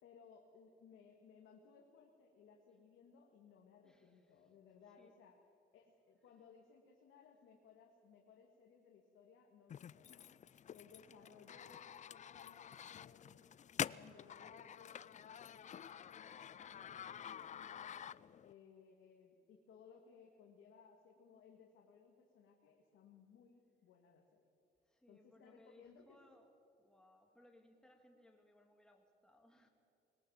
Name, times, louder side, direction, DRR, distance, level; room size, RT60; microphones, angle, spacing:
voice 1, 0.0-5.4 5.7-10.3 10.7-13.3 13.8-18.0 18.4-24.5 25.1-26.2, left 6 dB, 80° left, 0 dB, 2.1 m, -63 dB
voice 2, 3.8-4.4 5.0-5.1 11.1-11.5 24.8-26.5 26.8-29.7, left 1 dB, 5° left, 3 dB, 2.9 m, -67 dB
sound 1, 9.7-18.5, left 9 dB, 40° left, 0.4 m, -48 dB
21.0 x 18.5 x 7.4 m, 2.6 s
cardioid pair, 90°, 20 cm